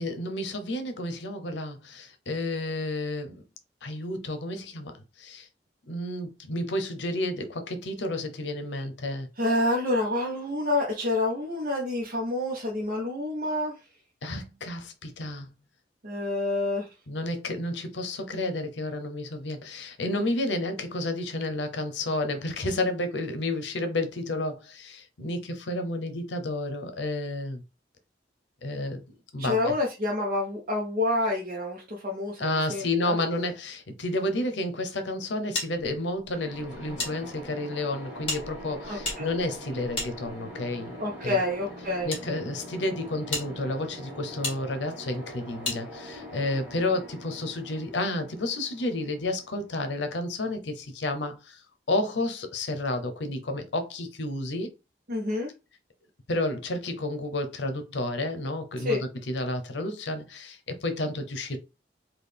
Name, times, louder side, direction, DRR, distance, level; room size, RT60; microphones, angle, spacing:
voice 1, 0.0-3.4 3.8-5.5 5.9-9.3 14.2-15.5 17.1-27.6 28.6-29.0 29.3-29.7 32.4-41.0 41.2-41.4 42.0-54.7 56.3-61.6, left 2 dB, 90° left, 0.7 m, -31 dB
voice 2, 9.4-13.8 16.0-16.9 29.4-33.1 38.9-39.3 41.0-42.1 55.1-55.5 58.8-59.0, left 2 dB, 50° right, 0.7 m, -28 dB
sound 1, 35.5-37.1 37.4-37.5 38.2-40.7 41.5-42.2 42.8-42.9 43.3-43.5 44.4-44.6 45.6-45.8, left 3 dB, 30° left, 1.7 m, -34 dB
sound 2, 36.3-50.0, equal, 10° right, 1.2 m, -43 dB
3.8 x 2.3 x 3.3 m
head